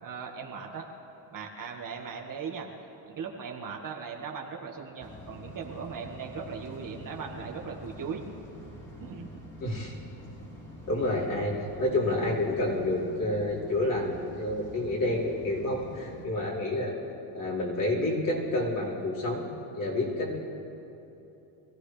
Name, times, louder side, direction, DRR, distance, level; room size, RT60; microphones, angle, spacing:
voice 1, 0.0-0.9 1.2-2.7 3.1-8.2 9.0-9.3, right 6 dB, 40° right, 1 dB, 1.7 m, -38 dB
sound 1, 5.0-16.3, equal, 25° left, 3.6 m, -46 dB
voice 2, 9.6-10.0 10.9-17.0 17.3-19.5 19.7-20.3, left 1 dB, 40° left, -5 dB, 4.7 m, -29 dB
24.5 x 15.5 x 3.3 m, 2.9 s
cardioid pair, 105°, 49 cm